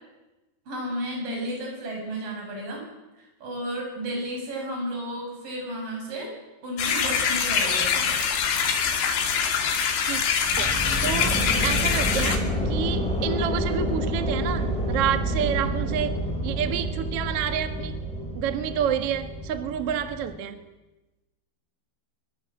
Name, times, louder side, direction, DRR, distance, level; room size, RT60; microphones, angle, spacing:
voice 1, 0.7-2.8 3.4-6.3 6.6-8.1, equal, 45° right, 1 dB, 8.9 m, -32 dB
sound 1, 6.8-12.4, left 7 dB, 70° left, 4.6 m, -24 dB
sound 2, 10.4-20.4, equal, ahead, 4.6 m, -28 dB
voice 2, 10.6-18.0 18.3-20.6, right 9 dB, 65° right, 8 dB, 1.4 m, -29 dB
24.0 x 23.0 x 7.8 m, 1.1 s
omnidirectional pair, 5.6 m